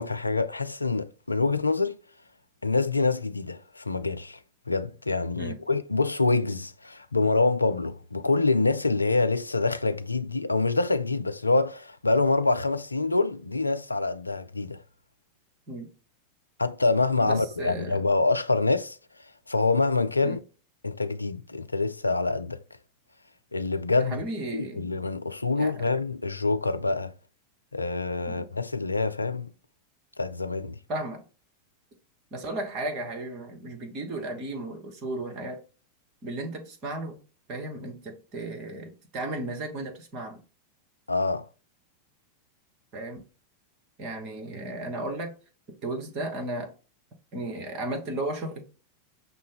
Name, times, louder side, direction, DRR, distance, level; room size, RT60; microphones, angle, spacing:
voice 1, 0.0-2.0 2.6-4.4 4.7-14.8 16.6-19.0 19.5-20.4 20.8-22.6 23.5-24.2 24.5-27.1 27.7-29.5 30.2-30.8 41.1-41.5, left 3 dB, 80° left, 0.3 m, -26 dB
voice 2, 17.2-18.0 20.2-20.4 24.0-24.9 25.6-25.9 28.3-28.5 30.9-31.2 32.3-35.6 36.2-37.2 37.5-40.4 42.9-43.2 44.0-45.3 45.8-46.7 47.3-48.6, right 2 dB, 35° right, 1.3 m, -34 dB
5.9 x 2.2 x 3.8 m
figure-of-eight pair, 90°, 0 cm